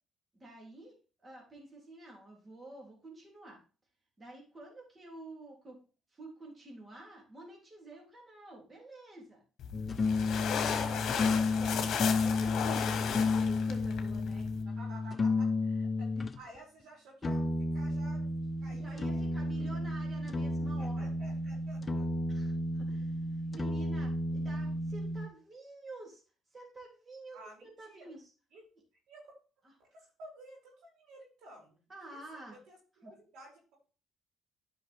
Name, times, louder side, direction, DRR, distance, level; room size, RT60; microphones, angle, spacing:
voice 1, 0.3-0.9 1.2-3.6 4.2-5.8 6.1-9.4 10.4-14.5 18.7-21.1 22.3-23.2 23.5-26.2 26.5-28.2 31.9-32.5 33.0-33.1, right 2 dB, 25° right, -2 dB, 3.4 m, -49 dB
sound 1, 9.6-14.6, left 8 dB, 60° left, 1.4 m, -35 dB
sound 2, 9.7-16.4 17.2-25.3, left 2 dB, 30° left, 0.9 m, -32 dB
voice 2, 14.6-19.3 19.6-19.8 20.8-22.1 27.3-28.1 28.5-28.6 29.1-29.3 29.8-33.8, right 2 dB, 80° right, -2 dB, 4.9 m, -54 dB
10.0 x 5.8 x 3.6 m, 0.36 s
cardioid pair, 85°, 0 cm